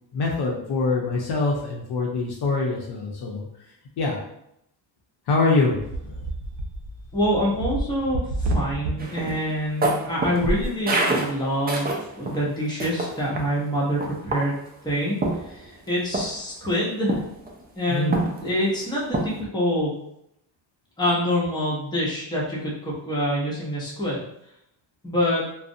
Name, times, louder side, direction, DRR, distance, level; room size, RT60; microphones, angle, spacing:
voice 1, 0.1-3.5 4.0-4.2 5.3-6.2 17.9-18.2, left 3 dB, 60° left, -1 dB, 0.6 m, -24 dB
sound 1, 5.8-8.9 10.3-10.7, right 2 dB, 70° right, 0.6 m, -29 dB
voice 2, 7.1-14.6 14.8-15.2 15.5-15.6 15.9-17.1 17.8-19.9 21.0-24.3 25.0-25.4, equal, 10° left, -6 dB, 0.8 m, -26 dB
sound 2, 9.0-12.4 12.8-13.5 14.0-14.7 15.2-15.9 16.1-16.4 17.1-17.5 18.1-18.7 19.1-19.4, right 2 dB, 25° right, 0.3 m, -27 dB
2.4 x 2.0 x 2.6 m, 0.77 s
cardioid pair, 105°, 45 cm